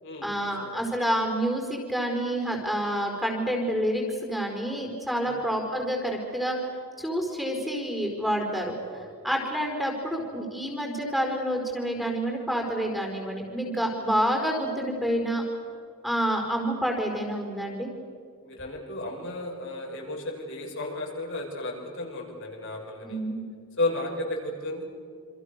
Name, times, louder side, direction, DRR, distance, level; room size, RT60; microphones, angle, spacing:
voice 1, 0.2-6.6 7.0-15.4 16.0-17.9 23.0-23.4, equal, ahead, 2 dB, 4.9 m, -28 dB
voice 2, 18.4-23.2 23.8-24.8, left 2 dB, 60° left, 0 dB, 6.3 m, -33 dB
28.5 x 27.5 x 6.8 m, 2.1 s
head